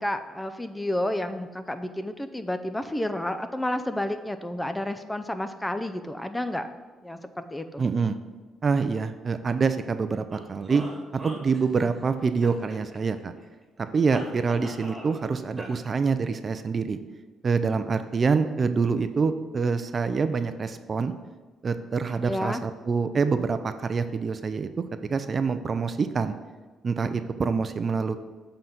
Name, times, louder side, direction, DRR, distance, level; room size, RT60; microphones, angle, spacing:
voice 1, 0.0-6.7 7.0-7.8 22.2-22.6, left 1 dB, 10° left, 9 dB, 0.5 m, -30 dB
voice 2, 7.8-8.2 8.6-10.8 11.2-13.3 13.9-17.0 17.4-21.1 21.6-24.7 25.0-26.3 26.8-28.2, right 5 dB, 40° right, 10 dB, 0.4 m, -26 dB
sound 1, 10.3-12.0 12.4-13.4 14.1-15.3 15.6-15.7, right 1 dB, 15° right, 1.9 m, -41 dB
7.6 x 3.8 x 5.9 m, 1.3 s
cardioid pair, 90°, 0 cm